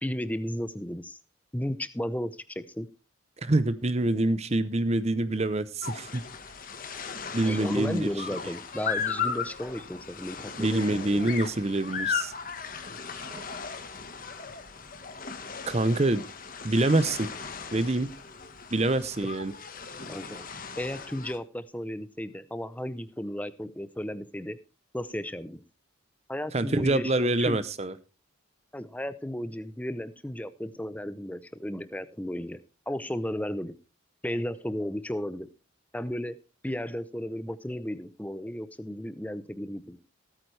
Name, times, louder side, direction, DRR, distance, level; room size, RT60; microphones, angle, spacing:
voice 1, 0.0-1.2 1.5-2.9 7.4-11.2 20.1-20.5 20.8-24.6 24.9-25.6 26.3-27.6 28.7-33.7 34.2-35.5 35.9-36.4 36.6-40.0, equal, 5° left, 0.7 m, -34 dB
voice 2, 3.4-6.2 7.3-8.1 10.6-12.3 13.3-13.4 15.7-16.2 16.6-17.3 17.7-18.1 18.7-19.5 26.5-27.9, right 2 dB, 30° right, 0.7 m, -26 dB
sound 1, 5.8-21.4, left 6 dB, 40° left, 1.4 m, -37 dB
17.5 x 9.0 x 3.3 m
head